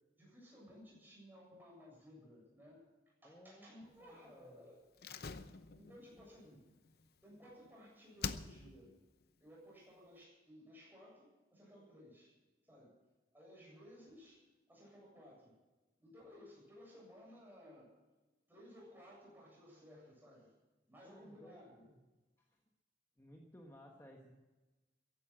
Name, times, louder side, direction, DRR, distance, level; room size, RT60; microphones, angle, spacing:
voice 1, 0.1-5.0 5.7-6.8 7.2-8.9 9.4-12.3 12.6-13.0 13.3-15.6 16.0-18.0 18.5-20.5 20.9-21.9, equal, 10° right, -3 dB, 7.5 m, -58 dB
voice 2, 3.2-3.7 4.0-4.6 6.2-6.3 21.0-22.0 22.4-22.6 23.2-24.3, equal, 15° left, 0 dB, 1.4 m, -59 dB
Slam, 5.0-7.7 8.2-8.9 9.2-9.3, left 5 dB, 55° left, 0.8 m, -46 dB
15.0 x 11.5 x 7.5 m, 1.2 s
head